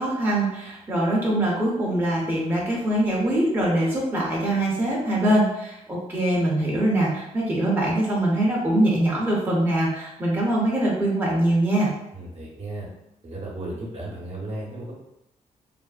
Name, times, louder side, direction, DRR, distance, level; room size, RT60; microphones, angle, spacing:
voice 1, 0.0-11.9, right 1 dB, 15° right, -5 dB, 0.7 m, -23 dB
voice 2, 12.1-12.9 13.2-14.9, right 1 dB, 50° right, -4 dB, 0.9 m, -34 dB
3.3 x 2.0 x 2.3 m, 0.85 s
cardioid pair, 100°, 13 cm